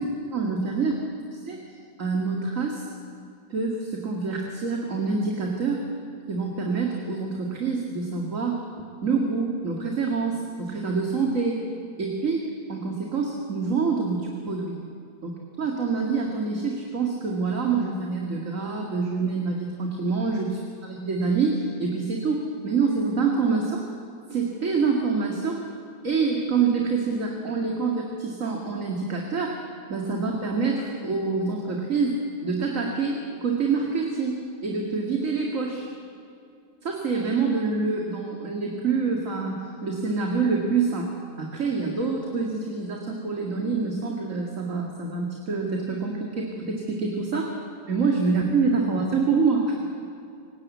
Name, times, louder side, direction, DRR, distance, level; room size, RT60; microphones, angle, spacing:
voice 1, 0.0-1.6 2.0-2.8 3.5-5.8 6.3-8.6 9.0-11.6 12.0-14.8 15.2-23.8 24.3-25.6 26.0-29.6 29.9-32.1 32.4-35.9 36.8-41.1 41.4-47.5 47.9-49.8, right 4 dB, 50° right, 0 dB, 2.5 m, -26 dB
27.5 x 18.0 x 8.5 m, 2.5 s
omnidirectional pair, 1.8 m